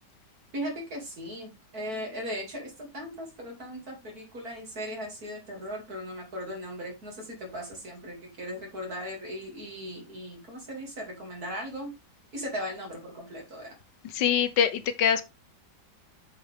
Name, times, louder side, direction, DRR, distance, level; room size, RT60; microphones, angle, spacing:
voice 1, 0.5-11.9 12.3-13.8, equal, 55° right, 3.2 m, -38 dB
voice 2, 14.0-15.2, left 8 dB, 85° left, 1.5 m, -24 dB
7.7 x 4.9 x 3.5 m
omnidirectional pair, 1.9 m